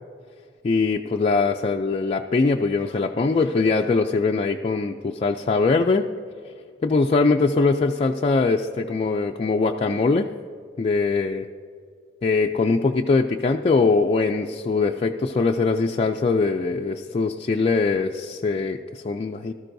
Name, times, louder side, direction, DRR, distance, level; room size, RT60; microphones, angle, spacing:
voice 1, 0.6-6.1 6.8-10.3 10.8-11.5 12.2-19.5, left 3 dB, 30° left, 2 dB, 0.3 m, -22 dB
18.0 x 13.5 x 2.6 m, 2.1 s
head